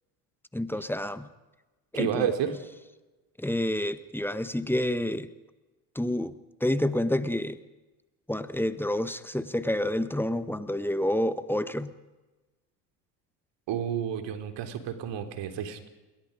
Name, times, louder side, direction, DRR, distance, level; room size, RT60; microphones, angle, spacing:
voice 1, 0.5-1.3 1.9-2.3 3.4-5.3 5.9-6.3 6.6-7.6 8.3-11.9, left 1 dB, 5° left, 12 dB, 1.5 m, -28 dB
voice 2, 1.9-2.5 13.7-15.9, right 9 dB, 60° right, 7 dB, 3.6 m, -30 dB
29.0 x 22.0 x 5.3 m, 1.1 s
hypercardioid pair, 70°, 49 cm